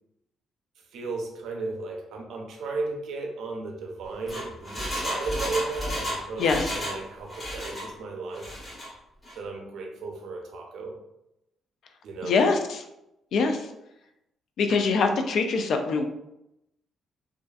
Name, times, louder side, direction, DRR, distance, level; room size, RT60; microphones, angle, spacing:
voice 1, 0.9-8.6 9.3-11.0 12.0-12.4, right 3 dB, 75° right, 1 dB, 0.5 m, -35 dB
Engine, 4.0-7.0 7.3-7.9 8.3-8.9 9.2-9.3, equal, 25° left, 1.2 m, -32 dB
voice 2, 6.4-6.7 12.2-12.8 13.3-13.7 14.6-16.0, left 4 dB, 70° left, 5 dB, 0.3 m, -23 dB
2.4 x 2.4 x 2.3 m, 0.87 s
cardioid pair, 90°, 0 cm